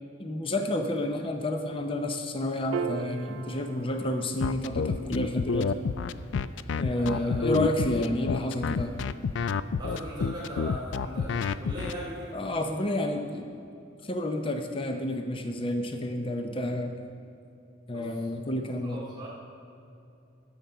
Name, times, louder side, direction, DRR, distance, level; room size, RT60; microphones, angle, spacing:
voice 1, 0.2-5.7 6.8-8.9 12.3-13.5 14.0-16.9 17.9-19.0, left 1 dB, 25° left, 5 dB, 0.7 m, -30 dB
Piano, 2.7-9.3, right 7 dB, 75° right, 0.3 m, -41 dB
sound 1, 4.4-11.9, left 5 dB, 65° left, 0.3 m, -28 dB
voice 2, 6.9-7.5 9.8-12.4 17.9-18.1 18.8-19.3, equal, 25° right, -6 dB, 2.2 m, -38 dB
13.0 x 7.3 x 5.6 m, 2.7 s
head